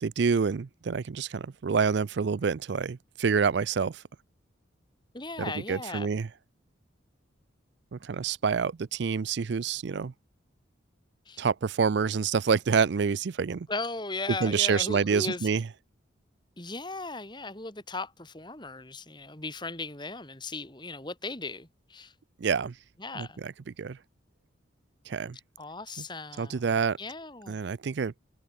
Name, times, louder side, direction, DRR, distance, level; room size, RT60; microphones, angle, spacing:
voice 1, 0.0-4.0 5.4-6.3 7.9-10.1 11.4-13.7 14.4-15.6 22.4-22.7 23.1-23.5 23.8-24.0 25.1-25.4 26.4-27.0 27.5-28.1, right 5 dB, 60° right, 0.4 m, -27 dB
voice 2, 5.1-6.1 11.3-11.4 13.7-15.5 16.6-22.1 23.0-23.4 25.6-27.6, left 3 dB, 25° left, 3.1 m, -37 dB
head